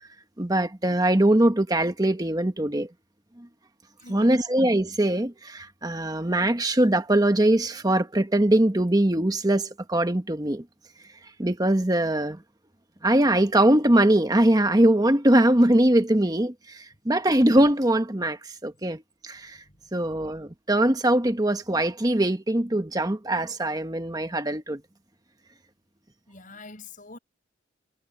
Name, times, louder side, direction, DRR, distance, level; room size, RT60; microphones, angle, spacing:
voice 1, 0.4-2.9 3.4-3.5 4.1-10.6 11.4-12.4 13.0-19.6 19.9-24.8, right 1 dB, 20° right, 1.2 m, -22 dB
voice 2, 4.0-4.5 19.5-19.9 26.3-27.2, left 3 dB, 40° left, 5.9 m, -46 dB
head